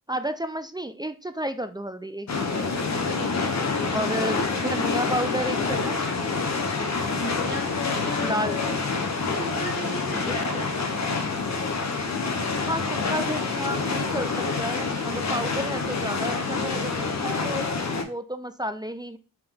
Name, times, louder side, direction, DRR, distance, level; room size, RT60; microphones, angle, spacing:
voice 1, 0.1-2.8 3.9-6.0 8.2-8.6 10.1-10.4 12.7-17.7 18.0-19.2, right 1 dB, 15° right, 10 dB, 0.3 m, -31 dB
sound 1, 2.3-18.0, left 4 dB, 55° left, 0.7 m, -27 dB
voice 2, 3.1-4.0 7.1-8.8 9.2-10.8, left 2 dB, 85° left, -3 dB, 1.2 m, -35 dB
3.6 x 2.9 x 3.5 m, 0.34 s
wide cardioid pair, 70°, 34 cm